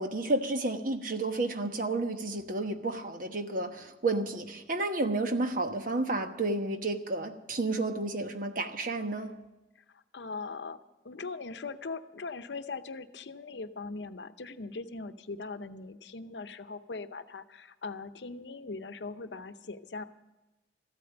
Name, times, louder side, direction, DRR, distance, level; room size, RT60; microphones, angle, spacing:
voice 1, 0.0-9.3, right 2 dB, 50° right, 6 dB, 1.1 m, -31 dB
voice 2, 9.9-10.8 11.0-20.0, left 4 dB, 80° left, 10 dB, 0.7 m, -40 dB
14.0 x 8.7 x 8.8 m, 1.0 s
head